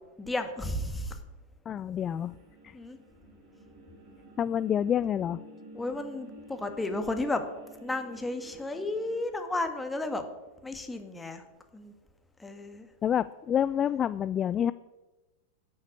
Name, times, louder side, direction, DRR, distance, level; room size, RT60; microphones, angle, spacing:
voice 1, 0.2-1.2 2.7-3.0 5.7-7.4 7.8-10.2 10.6-11.4 11.7-11.9 12.4-12.9, left 2 dB, 10° left, 6 dB, 1.6 m, -33 dB
voice 2, 1.7-2.3 2.6-2.8 4.4-5.4 13.0-14.7, left 9 dB, 30° left, 16 dB, 0.3 m, -28 dB
sound 1, 2.0-9.2, equal, 50° right, 4.4 m, -51 dB
11.5 x 6.4 x 8.7 m, 1.1 s
figure-of-eight pair, 95°, 0 cm